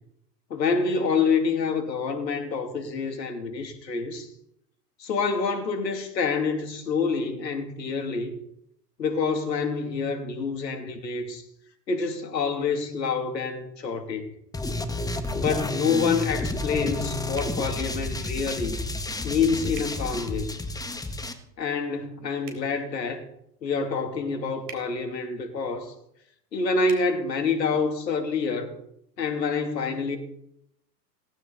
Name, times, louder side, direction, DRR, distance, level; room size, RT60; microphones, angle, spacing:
voice 1, 0.5-4.3 5.0-8.3 9.0-11.4 11.9-14.3 15.3-18.8 19.2-20.5 21.6-23.2 23.6-25.9 26.5-28.7 29.2-30.2, left 4 dB, 80° left, 2.9 m, -27 dB
sound 1, 14.5-21.3, left 2 dB, 5° left, 1.5 m, -31 dB
sound 2, 17.3-17.6 19.7-19.9 22.4-22.6 24.6-24.8 26.8-27.0, right 7 dB, 60° right, 4.0 m, -42 dB
18.0 x 15.0 x 4.0 m
hypercardioid pair, 100°, 50 cm